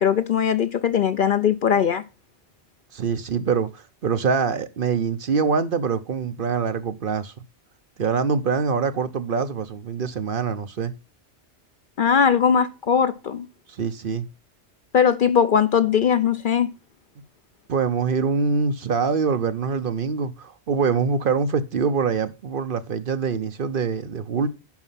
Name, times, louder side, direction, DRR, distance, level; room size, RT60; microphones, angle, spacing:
voice 1, 0.0-2.0 12.0-13.5 14.9-16.7, left 7 dB, 55° left, 0.7 m, -20 dB
voice 2, 2.9-7.3 8.0-10.9 13.7-14.3 17.7-24.5, right 5 dB, 55° right, 0.9 m, -24 dB
10.5 x 5.4 x 5.6 m
omnidirectional pair, 1.2 m